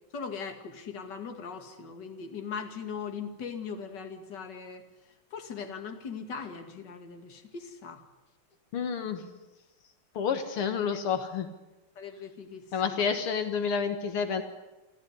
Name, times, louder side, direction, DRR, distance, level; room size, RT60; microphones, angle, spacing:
voice 1, 0.1-4.8 5.3-8.0 10.9-11.0 12.0-13.0, left 6 dB, 55° left, 6 dB, 2.5 m, -40 dB
voice 2, 8.7-9.3 10.2-11.5 12.7-14.4, left 6 dB, 80° left, 8 dB, 2.3 m, -29 dB
27.0 x 14.0 x 9.8 m, 1.1 s
omnidirectional pair, 2.4 m